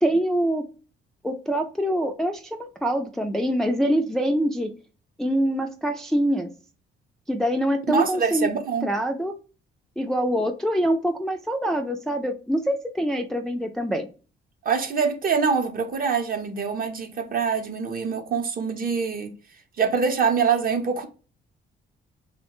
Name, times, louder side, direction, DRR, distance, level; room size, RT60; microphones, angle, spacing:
voice 1, 0.0-0.6 1.2-4.7 5.2-6.5 7.3-8.5 8.8-9.3 10.0-14.1, equal, ahead, 0.3 m, -24 dB
voice 2, 7.9-8.9 14.6-19.3 19.8-21.1, right 6 dB, 45° right, 0.7 m, -24 dB
3.1 x 2.1 x 2.9 m
cardioid pair, 90°, 20 cm